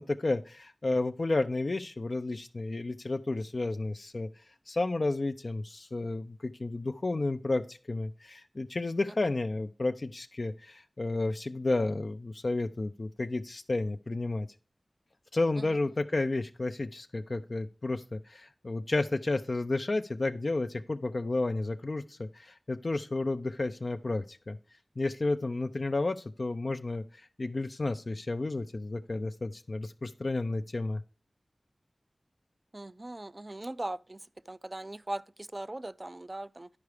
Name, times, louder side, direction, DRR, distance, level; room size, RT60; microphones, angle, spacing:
voice 1, 0.0-14.5 15.3-24.6 25.0-31.0, left 2 dB, 60° left, 0.4 m, -32 dB
voice 2, 32.7-36.7, right 1 dB, 35° right, 0.3 m, -39 dB
10.5 x 4.8 x 4.9 m
wide cardioid pair, 55°, 0 cm